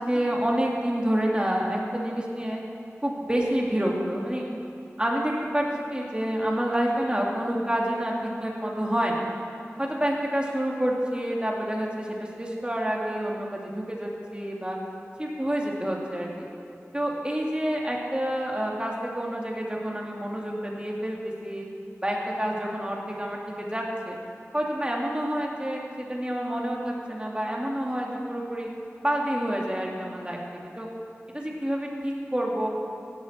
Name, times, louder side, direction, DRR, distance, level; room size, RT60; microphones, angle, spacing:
voice 1, 0.0-2.6 3.0-4.4 5.0-5.7 5.9-9.3 9.8-14.8 15.2-16.5 16.9-21.6 22.0-24.2 24.5-28.7 29.0-30.4 30.8-30.9 31.3-32.7, right 1 dB, 20° right, -2 dB, 2.4 m, -28 dB
16.5 x 11.5 x 4.3 m, 2.6 s
wide cardioid pair, 40°, 5 cm